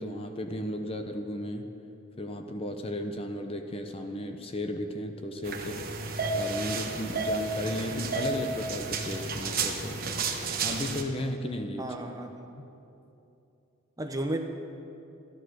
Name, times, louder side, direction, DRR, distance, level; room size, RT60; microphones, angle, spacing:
voice 1, 0.0-1.7 2.2-5.8 6.4-10.2 10.6-11.9, left 1 dB, 25° left, 6 dB, 0.7 m, -35 dB
sound 1, 5.4-11.0, right 3 dB, 45° right, 1.1 m, -32 dB
voice 2, 11.8-12.3 14.0-14.4, right 1 dB, 15° right, 4 dB, 0.8 m, -32 dB
14.0 x 10.5 x 6.4 m, 2.8 s
head